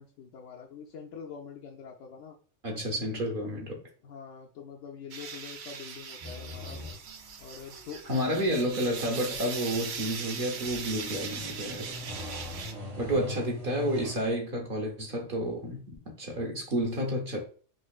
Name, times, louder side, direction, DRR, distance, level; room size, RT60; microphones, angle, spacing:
voice 1, 0.0-2.4 4.0-6.8 7.4-8.3 13.1-13.4, left 6 dB, 75° left, 0.9 m, -45 dB
voice 2, 2.6-3.8 8.1-11.9 13.0-17.4, equal, 50° right, 1.0 m, -30 dB
sound 1, 5.1-12.7, right 6 dB, 65° right, 0.5 m, -40 dB
sound 2, 6.2-14.2, left 1 dB, 85° right, 2.1 m, -42 dB
4.3 x 3.0 x 2.3 m
omnidirectional pair, 1.3 m